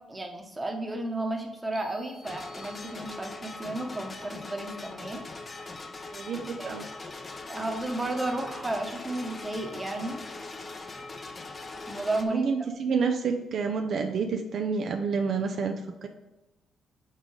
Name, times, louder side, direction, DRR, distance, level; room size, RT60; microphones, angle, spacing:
voice 1, 0.1-5.2 6.6-6.9 7.5-10.2 11.9-12.5, right 2 dB, 15° right, 3 dB, 1.0 m, -33 dB
sound 1, 1.7-3.6, equal, 60° left, 1.6 m, -55 dB
sound 2, 2.2-12.3, left 3 dB, 30° left, 0.6 m, -41 dB
voice 2, 6.1-6.8 12.3-16.1, right 5 dB, 60° right, 5 dB, 0.5 m, -29 dB
5.6 x 3.7 x 4.7 m, 1.0 s
cardioid pair, 90°, 0 cm